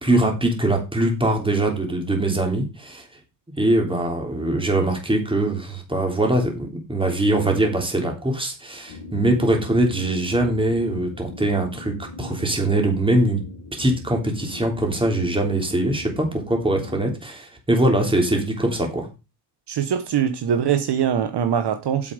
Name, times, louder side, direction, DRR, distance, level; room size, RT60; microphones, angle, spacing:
voice 1, 0.0-3.0 3.6-13.4 13.7-19.1, right 1 dB, 10° right, 2 dB, 3.1 m, -22 dB
sound 1, 8.9-17.2, left 3 dB, 70° left, 1.9 m, -40 dB
voice 2, 19.7-22.1, right 8 dB, 60° right, 8 dB, 1.2 m, -22 dB
8.0 x 7.5 x 5.0 m, 0.28 s
cardioid pair, 120°, 45 cm